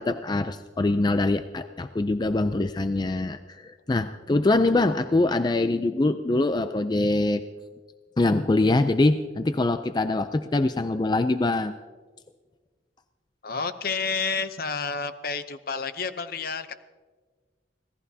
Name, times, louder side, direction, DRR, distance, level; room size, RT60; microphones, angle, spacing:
voice 1, 0.0-7.4 8.2-11.7, left 2 dB, 25° left, 9 dB, 0.4 m, -24 dB
voice 2, 13.4-16.7, left 5 dB, 50° left, 11 dB, 0.7 m, -30 dB
26.0 x 17.5 x 2.8 m, 1.5 s
head